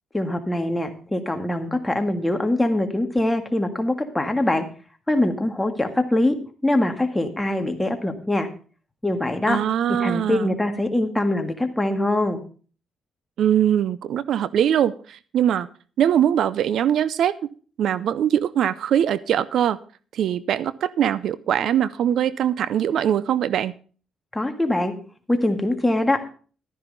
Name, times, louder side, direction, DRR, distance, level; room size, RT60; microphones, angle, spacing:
voice 1, 0.1-4.6 5.1-6.4 6.6-8.5 9.0-9.6 10.0-12.4 24.3-24.9 25.3-26.2, left 1 dB, 10° left, 5 dB, 1.8 m, -23 dB
voice 2, 9.5-10.5 13.4-15.7 16.0-17.3 17.8-19.8 20.1-23.7, right 10 dB, 70° right, 17 dB, 0.5 m, -22 dB
12.5 x 10.0 x 3.9 m, 0.39 s
cardioid pair, 90°, 0 cm